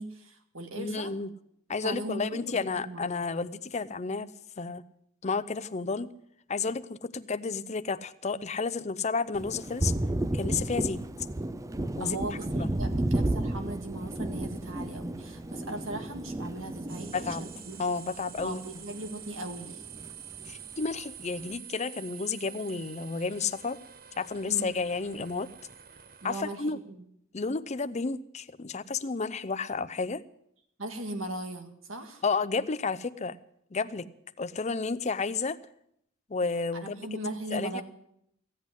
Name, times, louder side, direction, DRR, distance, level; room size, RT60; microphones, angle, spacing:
voice 1, 0.0-1.1 1.8-3.1 12.0-17.8 18.4-19.8 24.5-24.8 26.2-27.1 30.8-32.2 36.8-37.8, right 1 dB, 80° right, 6 dB, 2.0 m, -38 dB
voice 2, 0.8-1.3 1.7-4.3 4.6-4.8 5.2-6.1 6.5-9.9 10.3-11.0 12.0-12.2 12.6-12.7 17.1-17.4 17.8-18.6 20.5-23.8 24.2-25.5 26.2-26.8 27.3-30.2 32.2-33.4 33.7-34.1 34.4-35.6 36.3-37.2 37.5-37.8, left 4 dB, 35° left, 14 dB, 0.6 m, -31 dB
Thunder, 9.3-19.1 19.4-20.6, right 1 dB, 15° right, 0.5 m, -33 dB
sound 1, 16.9-26.6, right 9 dB, 45° right, 0.9 m, -47 dB
15.5 x 8.4 x 9.7 m, 0.74 s
head